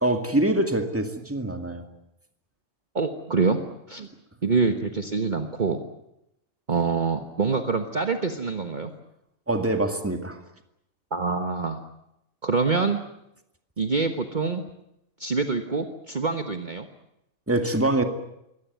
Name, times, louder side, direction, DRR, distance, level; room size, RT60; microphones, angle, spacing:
voice 1, 0.0-1.8 9.5-10.4 17.5-18.0, right 1 dB, 10° right, 6 dB, 2.1 m, -24 dB
voice 2, 2.9-3.6 3.9-4.1 4.4-5.8 6.7-8.9 11.1-11.8 12.4-13.0 13.8-14.6 15.2-16.9, right 4 dB, 40° right, 6 dB, 1.4 m, -25 dB
23.5 x 18.0 x 9.3 m, 0.83 s
omnidirectional pair, 1.3 m